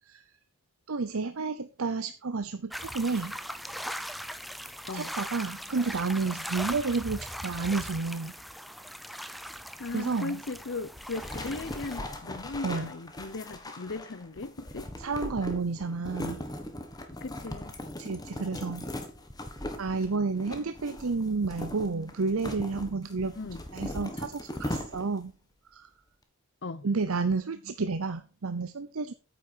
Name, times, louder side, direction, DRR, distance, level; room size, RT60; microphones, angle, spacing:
voice 1, 0.9-3.3 4.9-8.3 9.9-10.4 12.6-12.9 15.0-16.5 18.0-18.8 19.8-23.3 23.7-25.3 25.7-25.9 26.8-29.1, right 4 dB, 75° right, 0.7 m, -31 dB
sound 1, 2.7-12.0, equal, ahead, 0.6 m, -39 dB
voice 2, 9.8-14.9 17.2-17.8 23.4-23.6 26.6-26.9, left 3 dB, 55° left, 0.7 m, -37 dB
sound 2, 11.0-25.3, left 1 dB, 15° left, 1.4 m, -39 dB
9.2 x 8.4 x 4.5 m
head